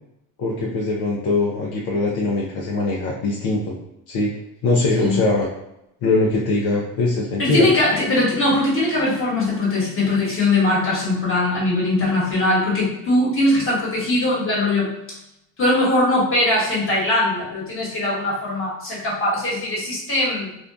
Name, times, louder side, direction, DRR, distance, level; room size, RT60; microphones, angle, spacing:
voice 1, 0.4-3.7 4.1-4.3 4.6-5.5 6.0-7.7, left 2 dB, 55° left, -3 dB, 0.6 m, -21 dB
voice 2, 7.4-14.9 15.6-20.5, left 2 dB, 30° left, -6 dB, 1.3 m, -20 dB
2.5 x 2.2 x 2.4 m, 0.85 s
cardioid pair, 95°, 45 cm